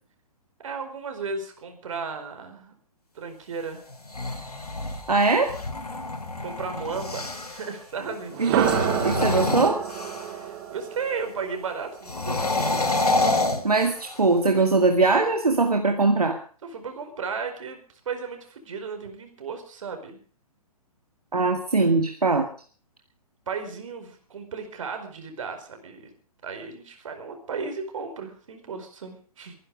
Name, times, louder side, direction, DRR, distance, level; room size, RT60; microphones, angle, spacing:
voice 1, 0.6-2.7 3.1-3.8 6.4-8.4 10.2-13.3 16.6-17.8 18.0-20.2 23.5-26.1 26.4-29.5, right 5 dB, 60° right, 7 dB, 4.7 m, -35 dB
sound 1, 3.9-7.7 8.4-10.5 12.0-14.3, left 2 dB, 80° left, 3.6 m, -27 dB
voice 2, 5.1-5.5 8.4-8.7 9.0-9.8 13.6-16.4 21.3-22.5, right 3 dB, 80° right, 4 dB, 2.1 m, -21 dB
sound 2, 8.3-12.3, right 10 dB, 40° right, 2.1 m, -29 dB
23.5 x 11.0 x 5.1 m, 0.42 s
figure-of-eight pair, 125°, 19 cm